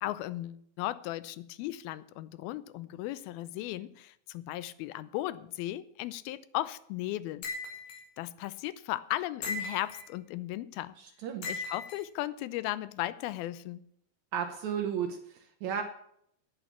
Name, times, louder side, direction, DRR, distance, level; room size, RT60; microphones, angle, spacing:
voice 1, 0.0-7.5 8.2-11.0 11.5-13.8, left 15 dB, 85° left, 2.5 m, -36 dB
sound 1, 7.4-8.0 9.4-10.1 11.4-12.0, left 3 dB, 60° left, 3.4 m, -37 dB
voice 2, 11.0-11.5 14.3-15.8, right 8 dB, 70° right, 1.9 m, -34 dB
9.6 x 9.1 x 7.2 m
omnidirectional pair, 4.3 m